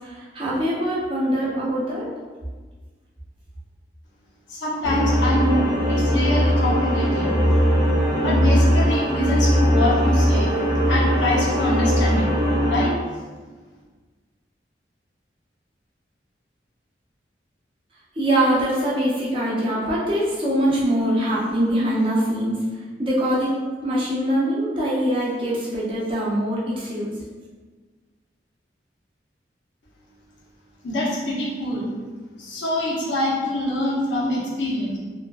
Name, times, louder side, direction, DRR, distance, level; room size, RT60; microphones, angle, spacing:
voice 1, 0.0-2.1 18.2-22.5 23.0-23.5 23.8-27.1, right 1 dB, 30° right, -7 dB, 0.6 m, -23 dB
voice 2, 4.5-7.3 8.2-10.5 10.8-12.2 12.7-12.9 30.8-31.9 32.4-35.0, left 1 dB, 85° left, -6 dB, 0.7 m, -25 dB
sound 1, 4.8-12.9, equal, 10° left, 0.7 m, -20 dB
2.6 x 2.4 x 2.2 m, 1.4 s
head